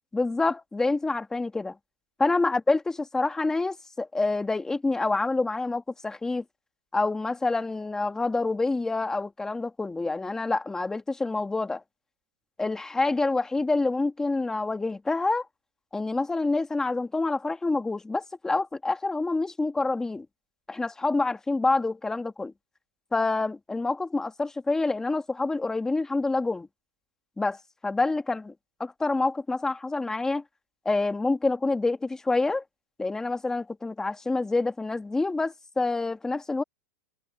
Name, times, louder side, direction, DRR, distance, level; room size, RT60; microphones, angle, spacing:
voice 1, 0.1-1.8 2.2-2.8 3.1-6.4 6.9-11.8 12.6-15.5 15.9-20.3 20.7-22.5 23.1-26.7 27.4-27.6 27.8-28.5 28.8-30.4 30.9-32.6 33.0-36.6, left 3 dB, 5° left, 1.6 m, -27 dB
supercardioid pair, 155°, 8 cm